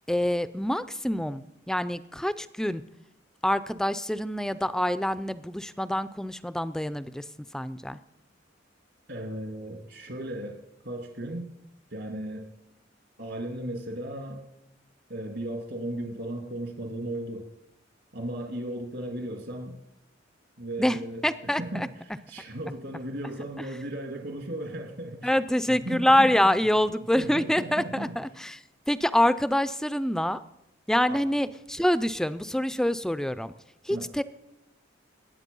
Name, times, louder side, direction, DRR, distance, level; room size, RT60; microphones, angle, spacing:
voice 1, 0.1-2.8 3.4-7.3 7.5-8.0 20.8-21.0 21.2-21.9 25.2-30.4 30.9-33.5 33.8-34.2, left 1 dB, 5° left, 14 dB, 0.4 m, -26 dB
voice 2, 9.1-11.5 11.9-12.5 13.2-14.4 15.1-17.5 18.1-19.8 20.6-21.9 22.3-25.3 25.7-26.3 27.1-28.1 31.1-31.2 33.9-34.1, right 1 dB, 65° right, 3 dB, 2.5 m, -36 dB
21.0 x 8.6 x 5.4 m, 0.87 s
head